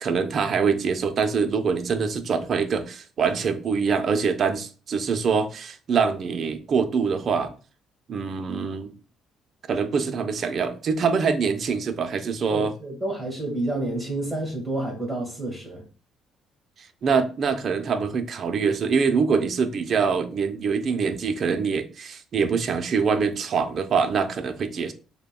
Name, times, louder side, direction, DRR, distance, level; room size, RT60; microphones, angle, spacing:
voice 1, 0.0-7.5 8.1-8.9 9.7-12.7 17.0-24.9, right 5 dB, 50° right, 0.5 m, -24 dB
voice 2, 12.5-15.8, right 2 dB, 15° right, 1.5 m, -29 dB
6.5 x 2.2 x 2.2 m
cardioid pair, 105°, 0 cm